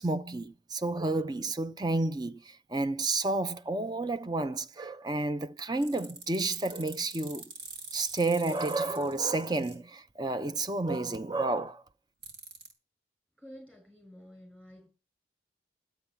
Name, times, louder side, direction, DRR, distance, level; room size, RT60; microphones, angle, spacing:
voice 1, 0.0-7.5 7.9-11.8, right 2 dB, 25° right, 0.7 m, -31 dB
sound 1, 5.8-9.7 12.2-12.7, right 3 dB, 65° right, 4.7 m, -45 dB
voice 2, 13.4-14.9, equal, 5° right, 6.0 m, -50 dB
12.5 x 9.1 x 7.0 m
head